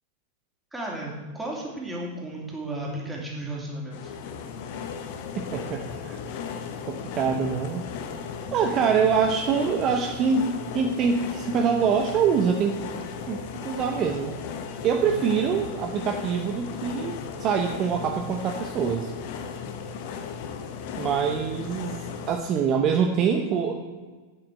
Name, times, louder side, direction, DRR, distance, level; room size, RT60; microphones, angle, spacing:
voice 1, 0.7-4.1 15.0-15.2 19.9-20.0, right 1 dB, 5° right, -3 dB, 3.0 m, -34 dB
sound 1, 3.9-22.4, left 6 dB, 50° left, 1.1 m, -36 dB
voice 2, 5.3-6.2 6.9-7.8 8.5-12.8 13.3-14.3 14.8-19.1 21.0-23.7, right 6 dB, 35° right, 3 dB, 0.9 m, -25 dB
8.9 x 8.0 x 6.3 m, 1.3 s
figure-of-eight pair, 90°, 0 cm